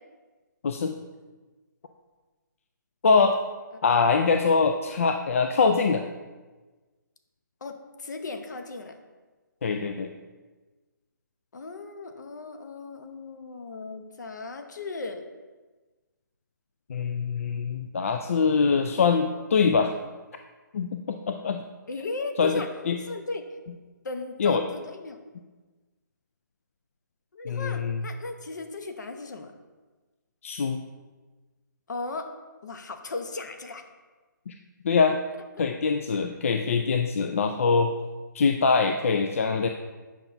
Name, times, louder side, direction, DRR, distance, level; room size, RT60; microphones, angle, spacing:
voice 1, 3.0-3.4 3.8-6.0 9.6-10.1 16.9-19.9 20.7-21.6 22.4-23.0 24.4-24.6 27.5-28.0 30.4-30.8 34.5-34.6 34.8-35.2 35.6-37.9 38.3-39.7, left 5 dB, 45° left, 6 dB, 0.3 m, -23 dB
voice 2, 7.6-9.0 11.5-15.3 21.9-22.7 23.0-23.6 24.0-25.2 27.3-29.5 31.9-32.3 32.6-33.8 35.6-35.7, left 3 dB, 60° left, 6 dB, 0.9 m, -36 dB
8.9 x 5.7 x 2.7 m, 1.3 s
hypercardioid pair, 165°, 11 cm